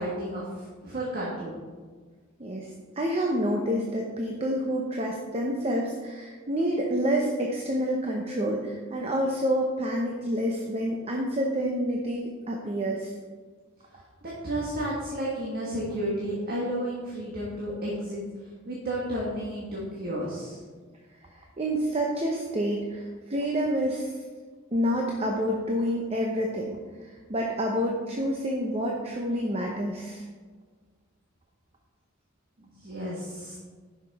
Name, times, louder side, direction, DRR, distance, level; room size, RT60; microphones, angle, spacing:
voice 1, 0.0-1.5 14.4-18.2 18.7-20.6 32.8-33.6, right 1 dB, 45° right, -5 dB, 1.6 m, -32 dB
voice 2, 2.4-13.1 13.9-14.0 21.4-24.1 24.7-26.8 27.0-30.2, equal, 30° right, 0 dB, 0.8 m, -28 dB
10.0 x 5.9 x 4.2 m, 1.5 s
head